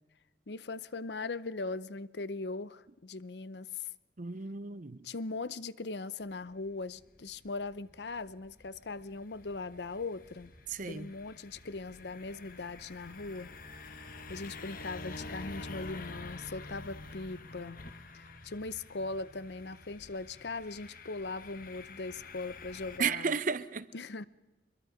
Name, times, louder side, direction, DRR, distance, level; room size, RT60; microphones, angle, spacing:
voice 1, 0.5-3.9 5.0-10.5 10.8-13.5 14.3-17.8 18.1-23.4 23.9-24.2, left 3 dB, 70° left, 0.7 m, -40 dB
voice 2, 4.2-5.1 10.7-11.1 23.0-23.9, right 5 dB, 50° right, 0.7 m, -33 dB
sound 1, 6.2-23.0, left 3 dB, 55° left, 1.5 m, -48 dB
24.5 x 22.0 x 5.1 m
head